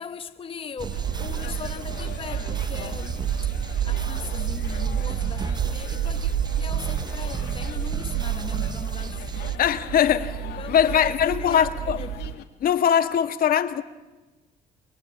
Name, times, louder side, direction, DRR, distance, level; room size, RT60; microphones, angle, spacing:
voice 1, 0.0-3.3 3.8-9.6 10.4-12.2, left 6 dB, 30° left, 1.0 m, -39 dB
sound 1, 0.8-9.6, right 5 dB, 25° right, 0.8 m, -36 dB
sound 2, 0.9-12.4, left 11 dB, 80° left, 2.2 m, -43 dB
sound 3, 0.9-12.3, right 10 dB, 80° right, 1.4 m, -29 dB
voice 2, 9.6-12.0 12.6-13.8, left 9 dB, 60° left, 1.7 m, -21 dB
30.0 x 21.0 x 8.6 m
cardioid pair, 110°, 17 cm